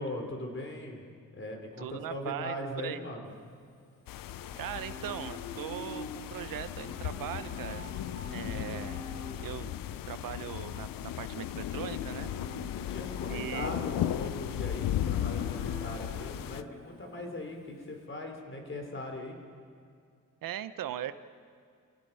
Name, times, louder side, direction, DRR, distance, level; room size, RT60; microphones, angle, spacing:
voice 1, 0.0-3.3 12.8-19.4, left 1 dB, 35° left, 3 dB, 4.0 m, -40 dB
voice 2, 1.8-2.6 2.8-3.0 4.6-7.9 8.3-9.0 9.4-9.7 10.1-12.3 13.3-13.7 20.4-21.1, right 11 dB, 85° right, 13 dB, 0.8 m, -39 dB
Livestock farm animals working animals, 3.3-18.0, left 2 dB, 60° left, 4.8 m, -46 dB
sound 1, 4.1-16.6, left 12 dB, 85° left, 0.6 m, -36 dB
28.0 x 17.0 x 5.6 m, 2.2 s
cardioid pair, 90°, 33 cm